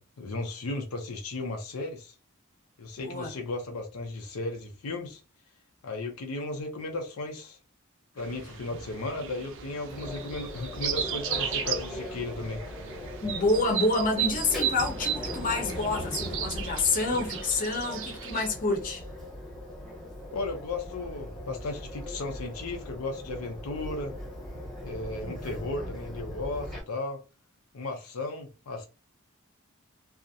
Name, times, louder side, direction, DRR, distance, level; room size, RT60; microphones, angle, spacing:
voice 1, 0.0-2.1 2.8-5.2 5.8-7.6 8.2-12.6 20.3-24.1 24.8-27.2 27.7-28.9, left 2 dB, 85° left, 0.5 m, -35 dB
voice 2, 3.0-3.3 13.2-19.0 25.2-25.7, left 2 dB, 40° left, 0.7 m, -28 dB
sound 1, 8.2-18.5, right 8 dB, 60° right, 0.4 m, -35 dB
sound 2, 9.9-26.8, left 1 dB, ahead, 0.8 m, -39 dB
2.4 x 2.0 x 2.6 m
head